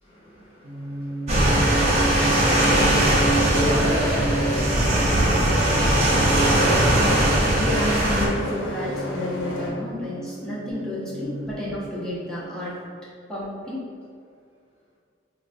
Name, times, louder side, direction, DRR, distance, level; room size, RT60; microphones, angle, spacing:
voice 1, 0.0-7.6, left 1 dB, 30° left, -9 dB, 0.9 m, -36 dB
sound 1, 0.6-12.7, right 2 dB, 90° right, 0.5 m, -32 dB
sound 2, 1.3-8.3, right 1 dB, 35° right, 0.7 m, -20 dB
sound 3, 1.5-9.7, left 1 dB, 80° left, 0.7 m, -31 dB
voice 2, 7.6-12.8 13.3-13.9, left 1 dB, 5° left, -8 dB, 0.5 m, -30 dB
4.2 x 2.1 x 2.5 m, 2.3 s
head